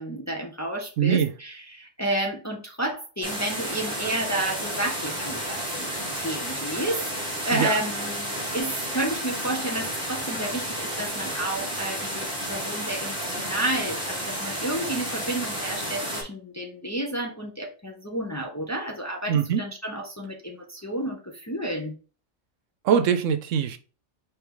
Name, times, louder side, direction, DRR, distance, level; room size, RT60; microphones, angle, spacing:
voice 1, 0.0-7.0 7.4-22.0, right 1 dB, 20° left, 1 dB, 0.6 m, -31 dB
voice 2, 1.0-1.3 7.5-7.7 19.3-19.6 22.8-23.8, right 8 dB, 85° right, 10 dB, 1.0 m, -22 dB
sound 1, 3.2-16.2, equal, 5° right, 1.7 m, -31 dB
4.6 x 3.1 x 3.7 m, 0.36 s
omnidirectional pair, 1.3 m